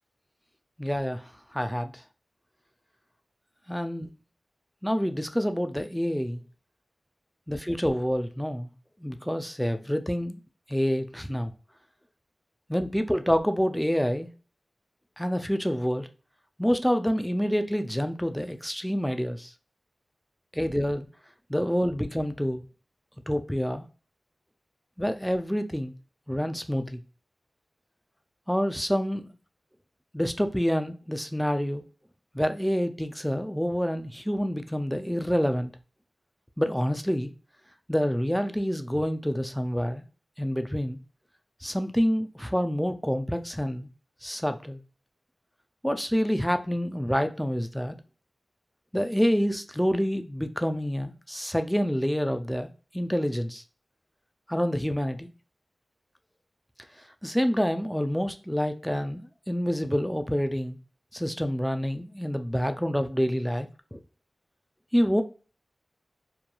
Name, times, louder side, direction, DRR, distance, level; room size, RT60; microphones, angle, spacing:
voice 1, 0.8-1.2 1.5-1.9 3.7-4.1 4.8-6.4 7.5-8.7 9.0-10.4 10.7-11.5 12.7-14.3 15.2-16.1 16.6-19.5 20.5-21.1 21.5-22.6 23.3-23.9 25.0-25.9 26.3-27.0 28.5-29.3 30.1-31.8 32.3-35.7 36.6-37.3 37.9-40.0 40.4-41.0 41.6-43.9 44.2-44.8 45.8-48.0 48.9-52.7 52.9-53.6 54.5-55.3 57.2-60.8 61.1-64.0 64.9-65.2, equal, 5° left, 0.3 m, -27 dB
2.3 x 2.2 x 2.9 m
wide cardioid pair, 50°, 0 cm